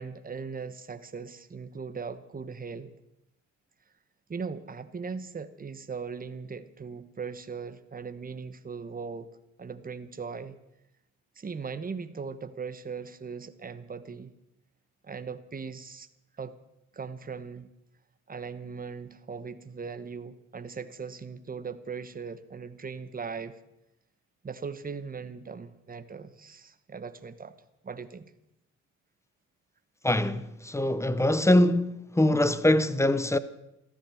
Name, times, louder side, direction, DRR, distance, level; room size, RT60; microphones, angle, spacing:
voice 1, 0.0-2.9 4.3-9.3 9.6-10.6 11.3-14.3 15.0-16.1 16.4-16.6 16.9-17.7 18.3-23.6 24.4-27.5 27.8-28.3, right 5 dB, 30° right, 1.2 m, -39 dB
voice 2, 30.0-33.4, left 1 dB, 10° left, 0.9 m, -23 dB
15.0 x 13.0 x 6.4 m
cardioid pair, 90°, 30 cm